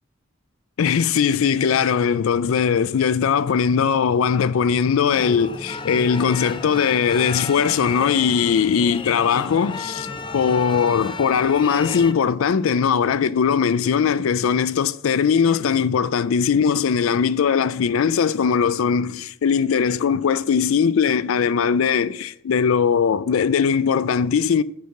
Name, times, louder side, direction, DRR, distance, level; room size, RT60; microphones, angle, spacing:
voice 1, 0.8-10.1 10.3-24.6, left 6 dB, 85° left, 0.4 m, -20 dB
sound 1, 5.1-12.1, left 3 dB, 25° left, 0.5 m, -33 dB
6.7 x 4.7 x 6.8 m
head